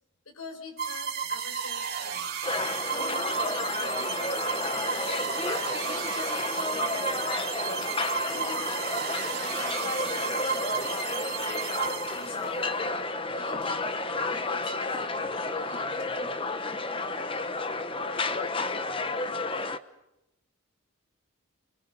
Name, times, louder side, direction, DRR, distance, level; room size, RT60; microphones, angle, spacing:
voice 1, 0.2-2.3 2.8-5.3 5.8-7.9 8.2-8.8 9.1-12.8 13.3-13.9 14.2-16.3, left 3 dB, 85° left, 3 dB, 6.4 m, -45 dB
sound 1, 0.8-12.6, right 7 dB, 45° right, 3.1 m, -33 dB
sound 2, 2.4-19.8, left 3 dB, 25° left, 1.1 m, -31 dB
30.0 x 24.5 x 5.5 m, 0.91 s
head